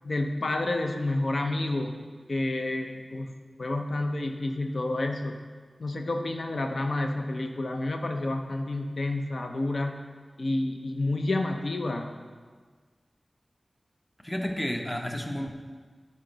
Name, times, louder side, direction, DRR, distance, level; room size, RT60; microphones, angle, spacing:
voice 1, 0.0-2.0 2.3-3.3 3.6-5.4 5.8-10.0 10.4-12.1, left 2 dB, 75° left, 4 dB, 0.6 m, -29 dB
voice 2, 14.2-15.5, equal, 15° left, 3 dB, 0.8 m, -31 dB
10.5 x 4.4 x 3.9 m, 1.5 s
wide cardioid pair, 60°, 0 cm